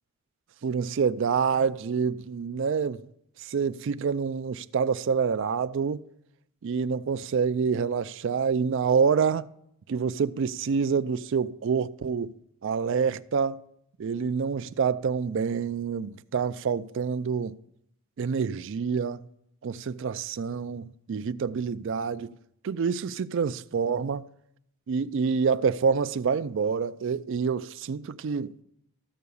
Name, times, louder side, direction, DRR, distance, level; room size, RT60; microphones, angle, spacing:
voice 1, 0.6-3.0 3.4-6.0 6.6-9.5 9.9-12.3 12.6-13.6 14.0-17.6 18.2-19.3 19.6-22.3 22.6-24.2 24.9-28.5, right 6 dB, 55° right, 0.3 m, -27 dB
14.0 x 4.7 x 6.9 m
head